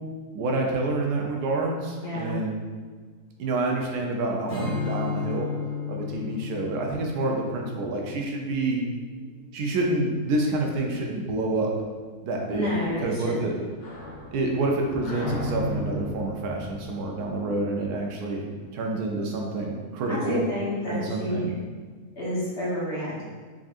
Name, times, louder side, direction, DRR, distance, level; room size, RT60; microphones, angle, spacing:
voice 1, 0.3-2.6 3.4-5.5 5.9-8.8 9.5-11.7 12.2-12.7 13.0-13.5 14.3-18.4 18.7-20.4 20.9-21.5, right 2 dB, 80° right, 0 dB, 1.1 m, -28 dB
voice 2, 2.0-2.4 12.5-13.5 20.1-21.5 22.2-23.2, equal, 45° left, -9 dB, 1.2 m, -29 dB
Strum, 4.5-9.8, left 5 dB, 25° left, 1.2 m, -34 dB
sound 1, 12.6-18.1, left 1 dB, 75° left, 1.5 m, -36 dB
3.9 x 3.6 x 2.4 m, 1.5 s
omnidirectional pair, 1.6 m